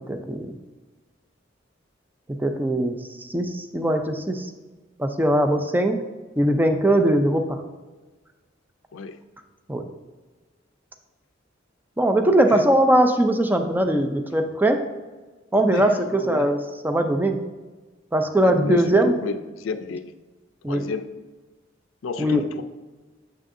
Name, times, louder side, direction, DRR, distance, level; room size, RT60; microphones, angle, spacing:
voice 1, 0.1-0.5 2.3-4.5 5.0-6.0 6.4-7.6 9.7-9.9 12.0-14.8 15.5-16.6 16.8-17.4 18.1-19.3 20.6-20.9 22.2-22.4, right 1 dB, 10° right, 6 dB, 0.4 m, -21 dB
voice 2, 15.5-16.5 18.4-20.1 20.7-21.1 22.0-22.6, left 4 dB, 85° left, 10 dB, 0.4 m, -31 dB
6.7 x 6.3 x 2.6 m, 1.3 s
head